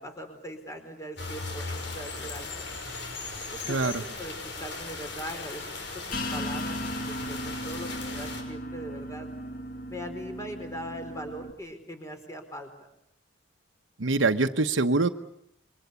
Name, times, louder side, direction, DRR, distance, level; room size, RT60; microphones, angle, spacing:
voice 1, 0.0-2.7 3.5-6.8 7.1-9.3 9.9-12.7, equal, 15° left, 6 dB, 4.6 m, -40 dB
sound 1, 1.2-8.4, left 3 dB, 65° left, 6.1 m, -38 dB
voice 2, 3.7-4.0 14.0-15.1, right 3 dB, 85° right, 7 dB, 1.1 m, -24 dB
sound 2, 6.1-11.5, equal, 45° left, 2.1 m, -36 dB
28.0 x 23.5 x 8.4 m, 0.75 s
head